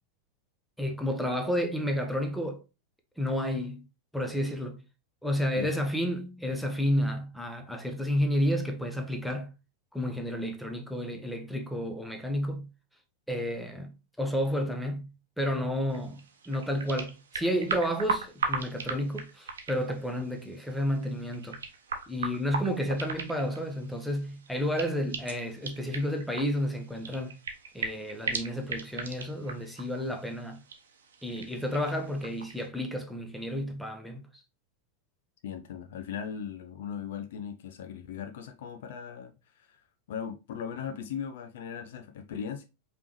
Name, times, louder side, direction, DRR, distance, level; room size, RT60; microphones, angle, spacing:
voice 1, 0.8-2.6 3.2-3.8 4.1-4.8 5.2-9.5 9.9-12.7 13.3-21.6 22.1-27.4 27.7-30.6 31.2-34.3, equal, ahead, 0.8 m, -31 dB
sound 1, 15.9-32.7, right 4 dB, 65° right, 0.8 m, -39 dB
voice 2, 35.4-39.3 39.6-39.8 40.1-42.7, left 7 dB, 55° left, 0.6 m, -38 dB
5.2 x 3.2 x 3.0 m
figure-of-eight pair, 90°, 0 cm